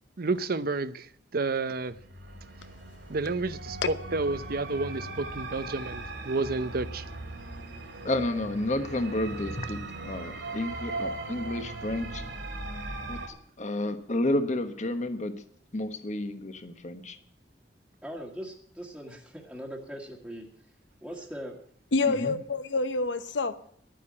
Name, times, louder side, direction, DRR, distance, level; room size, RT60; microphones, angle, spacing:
voice 1, 0.2-1.1 1.3-2.0 3.1-7.0, right 3 dB, 55° right, 14 dB, 0.7 m, -30 dB
sound 1, 1.9-13.3, right 2 dB, 85° right, 2.7 m, -39 dB
voice 2, 8.0-12.2 13.1-15.3 15.7-17.2 22.1-22.4, left 1 dB, 40° left, 9 dB, 1.2 m, -31 dB
voice 3, 18.0-21.6, equal, 5° right, -4 dB, 1.6 m, -41 dB
voice 4, 21.9-23.7, left 3 dB, 80° left, 12 dB, 0.9 m, -27 dB
11.5 x 9.2 x 8.5 m, 0.63 s
head